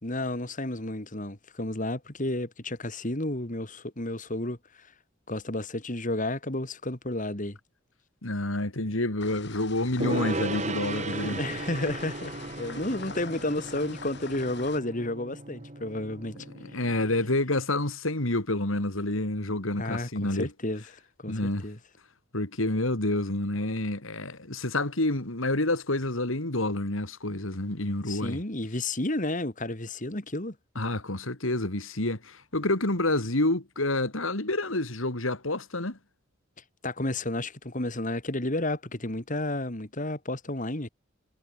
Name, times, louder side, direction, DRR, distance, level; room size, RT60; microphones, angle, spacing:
voice 1, 0.0-4.9 5.3-7.6 11.2-16.4 19.8-20.8 21.2-21.8 28.1-30.5 36.8-40.9, left 1 dB, 40° left, 3.0 m, -32 dB
voice 2, 8.2-11.4 16.6-20.5 21.3-21.7 22.3-28.4 30.7-36.0, left 2 dB, 80° left, 3.4 m, -28 dB
sound 1, 9.2-14.8, left 5 dB, 55° left, 5.7 m, -45 dB
Gong, 10.0-17.4, right 2 dB, 35° right, 2.3 m, -36 dB
head